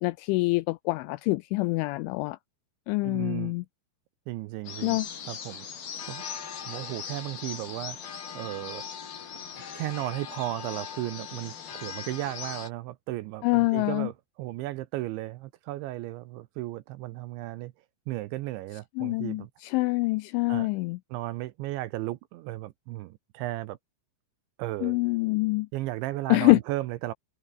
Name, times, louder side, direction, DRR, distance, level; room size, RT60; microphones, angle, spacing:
voice 1, 0.0-2.4 2.9-3.6 4.8-5.1 13.4-14.1 19.0-21.0 24.8-25.7 26.3-26.6, left 23 dB, 85° left, 2.8 m, -25 dB
voice 2, 3.0-3.6 4.3-5.0 5.3-5.7 6.0-6.2 6.7-8.8 9.7-14.1 14.4-17.7 18.1-19.5 20.5-20.7 21.1-23.8 24.6-25.0 25.7-27.1, right 16 dB, 80° right, 2.9 m, -35 dB
sound 1, 4.7-12.7, left 7 dB, 50° left, 5.1 m, -39 dB
omnidirectional pair, 5.8 m